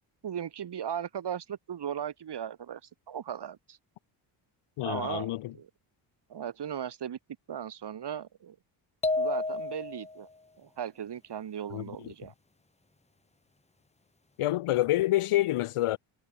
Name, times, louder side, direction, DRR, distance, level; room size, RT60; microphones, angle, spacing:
voice 1, 0.2-3.8 4.8-5.7 6.3-7.2 7.5-8.6 9.2-10.3 10.6-12.3, right 9 dB, 55° right, 4.7 m, -37 dB
voice 2, 4.8-5.5 11.7-11.8 14.4-16.0, left 15 dB, 85° left, 1.7 m, -27 dB
sound 1, 9.0-10.2, left 3 dB, 15° left, 1.6 m, -30 dB
cardioid pair, 120°, 50 cm